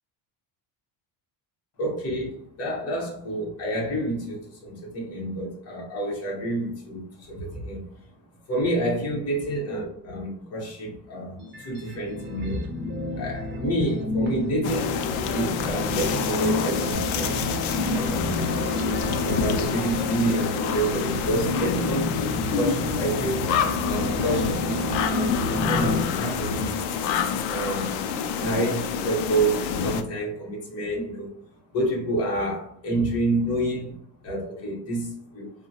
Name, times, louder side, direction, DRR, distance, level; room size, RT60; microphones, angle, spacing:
voice 1, 1.8-7.9 8.5-17.4 17.9-18.4 19.0-23.5 23.8-26.9 27.3-27.9 28.3-31.3 31.7-35.5, right 1 dB, 30° left, 1.0 m, -29 dB
sound 1, 11.4-26.0, left 2 dB, 25° right, 0.5 m, -30 dB
sound 2, 14.6-30.0, left 7 dB, 90° left, 0.5 m, -28 dB
sound 3, 16.9-26.7, right 3 dB, 75° right, 0.5 m, -39 dB
3.7 x 2.2 x 2.7 m
cardioid pair, 155°, 48 cm